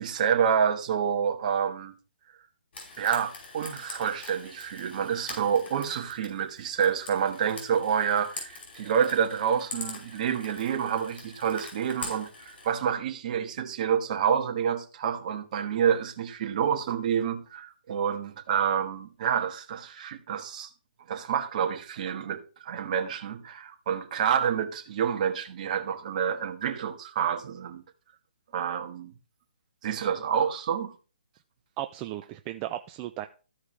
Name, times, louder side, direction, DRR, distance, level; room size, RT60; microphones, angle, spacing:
voice 1, 0.0-1.9 3.0-20.7 21.1-27.8 28.5-29.1 29.8-30.9, right 8 dB, 45° right, 1.4 m, -28 dB
Frying (food), 2.7-12.7, left 3 dB, 60° left, 5.0 m, -44 dB
voice 2, 31.8-33.3, right 13 dB, 20° right, 0.4 m, -35 dB
14.5 x 4.8 x 3.2 m
hypercardioid pair, 150°, 6 cm